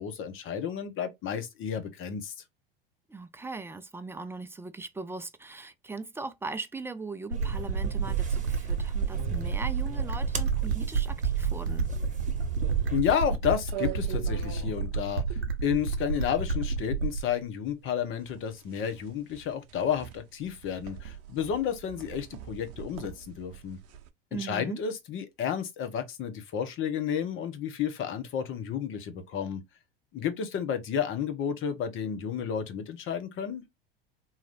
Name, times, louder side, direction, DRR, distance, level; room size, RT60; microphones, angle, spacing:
voice 1, 0.0-2.3 12.9-23.8 24.4-29.6 30.1-33.6, left 8 dB, 40° left, 1.1 m, -31 dB
voice 2, 3.1-11.9 24.3-24.8, right 3 dB, 10° right, 0.5 m, -39 dB
sound 1, 7.3-13.0, right 10 dB, 25° right, 1.1 m, -33 dB
sound 2, 7.3-17.3, right 4 dB, 85° right, 0.9 m, -30 dB
sound 3, 11.7-24.1, right 10 dB, 50° right, 0.7 m, -44 dB
4.0 x 2.9 x 2.5 m
hypercardioid pair, 80°, 30 cm